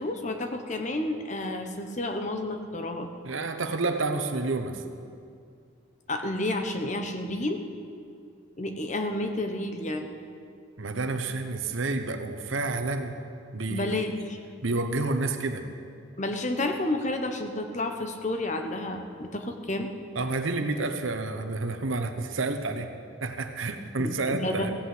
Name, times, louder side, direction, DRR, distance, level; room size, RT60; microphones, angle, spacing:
voice 1, 0.0-3.1 6.1-7.6 8.6-10.1 13.7-14.4 16.2-19.9 24.0-24.7, left 1 dB, 35° left, 5 dB, 1.0 m, -30 dB
voice 2, 3.2-4.8 10.8-13.2 13.5-14.1 14.6-15.7 20.1-22.9 23.2-24.7, right 3 dB, 75° right, 7 dB, 1.1 m, -29 dB
16.0 x 8.7 x 7.8 m, 2.3 s
head